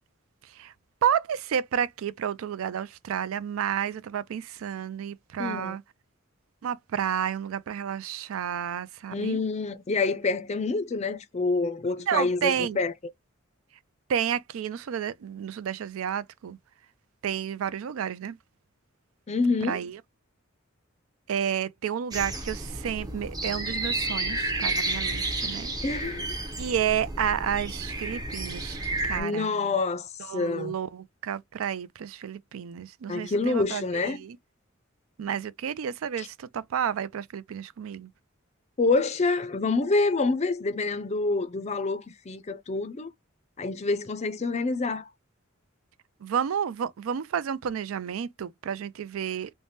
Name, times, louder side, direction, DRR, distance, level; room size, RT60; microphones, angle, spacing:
voice 1, 0.4-0.7 1.0-5.8 6.6-9.4 12.1-12.8 14.1-16.6 17.2-18.4 19.6-20.0 21.3-25.7 26.6-29.5 30.2-34.4 35.2-38.1 46.2-49.5, right 8 dB, 80° right, 0.4 m, -31 dB
voice 2, 5.4-5.8 9.1-12.9 19.3-19.8 25.8-26.3 29.2-30.7 33.1-34.2 36.2-36.3 38.8-43.1 43.6-45.0, left 3 dB, 30° left, 0.4 m, -27 dB
sound 1, 22.1-29.2, right 2 dB, 20° right, 0.6 m, -31 dB
3.3 x 2.1 x 2.6 m
head